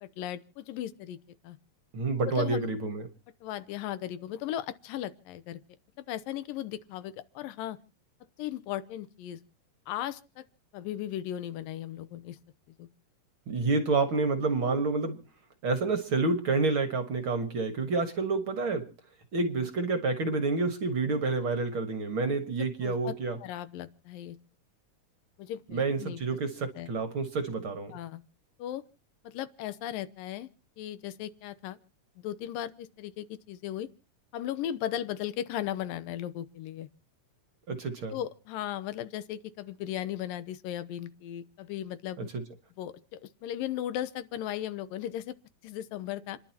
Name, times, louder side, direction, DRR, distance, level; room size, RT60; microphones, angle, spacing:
voice 1, 0.0-1.2 1.4-1.6 2.2-2.7 3.4-5.6 6.0-7.8 8.4-9.4 9.9-10.4 10.7-12.4 12.8-12.9 22.6-24.4 25.4-26.2 26.8-26.9 27.9-28.2 28.6-28.8 29.2-30.5 30.8-31.8 32.2-33.9 34.3-36.9 38.1-42.3 42.8-45.4 45.6-46.4, left 12 dB, 90° left, 14 dB, 2.6 m, -37 dB
voice 2, 1.9-3.1 13.5-15.2 15.6-18.9 19.3-23.4 25.7-27.9 37.7-38.2 42.3-42.4, right 3 dB, 50° right, 7 dB, 1.8 m, -29 dB
29.5 x 11.5 x 2.9 m, 0.33 s
omnidirectional pair, 3.8 m